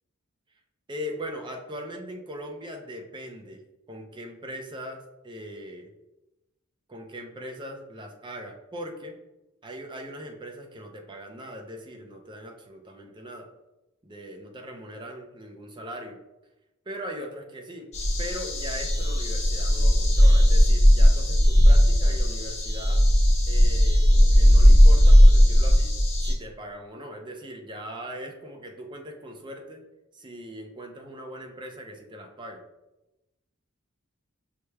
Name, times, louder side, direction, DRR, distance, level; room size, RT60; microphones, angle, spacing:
voice 1, 0.9-3.6 3.9-5.9 6.9-9.2 9.6-13.5 14.0-16.2 16.9-17.9 18.2-23.0 23.5-25.9 26.2-29.8 30.1-32.6, equal, 25° right, 2 dB, 0.5 m, -40 dB
sound 1, 17.9-26.3, equal, 35° left, 0.8 m, -17 dB
5.6 x 3.2 x 2.2 m, 0.99 s
head